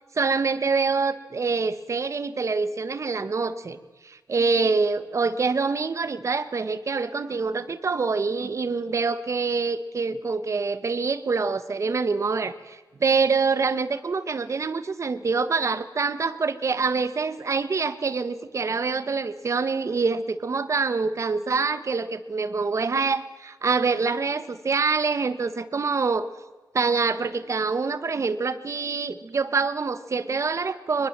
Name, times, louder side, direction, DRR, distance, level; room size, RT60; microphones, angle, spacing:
voice 1, 0.1-3.8 4.0-26.3 26.7-31.1, right 4 dB, 40° right, 12 dB, 1.3 m, -25 dB
23.0 x 21.0 x 7.5 m, 1.3 s
wide cardioid pair, 145°, 8 cm